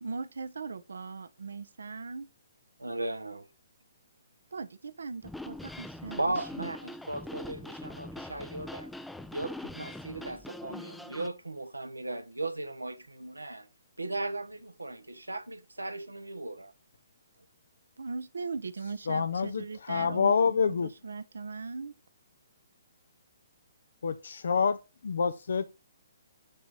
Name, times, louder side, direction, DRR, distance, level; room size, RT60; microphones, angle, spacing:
voice 1, 0.0-2.3 4.5-6.7 18.0-21.9, right 4 dB, 70° right, 0.9 m, -39 dB
voice 2, 2.8-3.4 6.2-8.9 9.3-13.7 14.0-16.7, right 2 dB, 90° right, 1.3 m, -37 dB
sound 1, 5.2-11.3, left 1 dB, 5° left, 0.5 m, -43 dB
voice 3, 19.1-20.9 24.0-24.8 25.0-25.7, left 6 dB, 65° left, 0.6 m, -27 dB
8.7 x 4.1 x 4.9 m
figure-of-eight pair, 130°, 0 cm